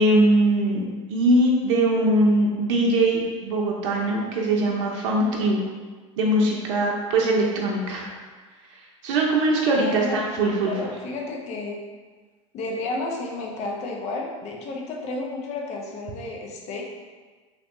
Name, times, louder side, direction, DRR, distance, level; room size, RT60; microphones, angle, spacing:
voice 1, 0.0-5.6 6.2-8.1 9.0-10.7, right 1 dB, 70° right, -1 dB, 0.6 m, -21 dB
voice 2, 9.6-10.2 10.6-11.8 12.5-16.8, left 2 dB, 45° left, 0 dB, 0.6 m, -32 dB
3.1 x 2.9 x 3.0 m, 1.4 s
hypercardioid pair, 80°, 17 cm